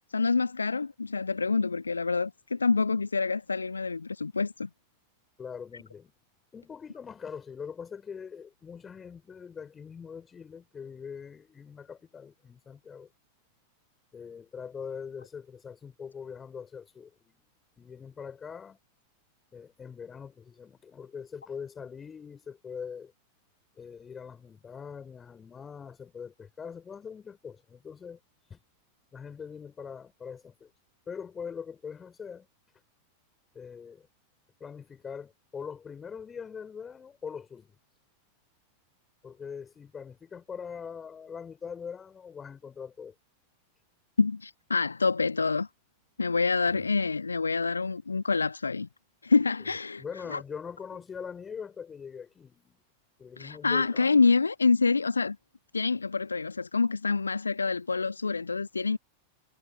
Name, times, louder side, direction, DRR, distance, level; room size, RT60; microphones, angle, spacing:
voice 1, 0.0-4.7 44.2-45.7 46.2-48.9 49.2-50.0 50.3-50.4 53.4-55.4 55.7-59.0, left 4 dB, 75° left, 1.2 m, -27 dB
voice 2, 5.4-6.1 6.5-13.1 14.1-17.4 17.8-18.8 19.5-23.1 23.8-28.2 28.5-28.6 29.1-30.7 31.1-32.5 33.5-34.1 34.6-37.7 39.2-43.1 46.7-46.8 49.6-49.7 50.0-52.8 53.2-54.2, left 6 dB, 20° left, 5.1 m, -42 dB
figure-of-eight pair, 90°, 0 cm